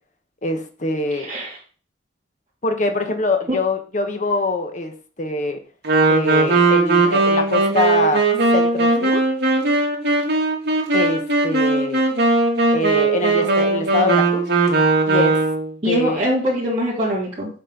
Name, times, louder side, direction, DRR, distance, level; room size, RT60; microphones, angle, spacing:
voice 1, 0.4-1.3 2.6-5.6 6.1-8.2 8.5-9.2 10.9-12.0 12.7-14.4 15.1-15.4 15.8-16.2, left 2 dB, 40° left, 6 dB, 1.0 m, -24 dB
voice 2, 1.1-1.6 15.8-17.5, equal, 30° right, -9 dB, 2.8 m, -23 dB
Wind instrument woodwind instrument, 5.8-15.7, right 3 dB, 60° right, 2.3 m, -18 dB
7.8 x 4.2 x 5.3 m, 0.41 s
head